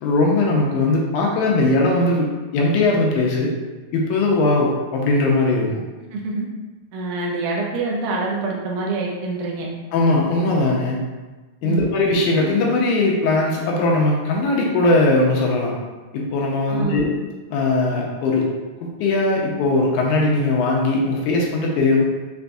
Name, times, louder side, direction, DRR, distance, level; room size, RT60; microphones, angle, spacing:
voice 1, 0.0-3.5 3.9-5.8 9.9-11.0 11.6-15.8 16.1-17.1 17.5-18.5 18.8-22.0, left 2 dB, 80° left, -2 dB, 2.0 m, -19 dB
voice 2, 6.1-6.5 6.9-9.7 11.6-11.9 16.7-17.0, right 3 dB, 80° right, -1 dB, 2.2 m, -26 dB
5.9 x 2.6 x 2.3 m, 1.2 s
omnidirectional pair, 3.7 m